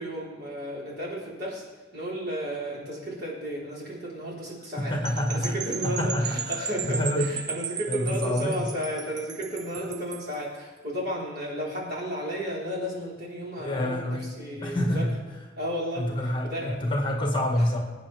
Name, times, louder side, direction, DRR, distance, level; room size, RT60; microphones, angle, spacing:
voice 1, 0.0-1.7 1.9-15.0 15.6-16.8, equal, 55° right, -5 dB, 4.4 m, -33 dB
voice 2, 4.8-5.6 5.8-7.3 7.9-8.6 9.8-9.9 13.6-15.2 15.9-17.8, left 1 dB, 25° left, 1 dB, 1.7 m, -27 dB
sound 1, 5.0-10.3, right 7 dB, 20° right, 0.4 m, -36 dB
22.5 x 9.1 x 3.5 m, 1.3 s
head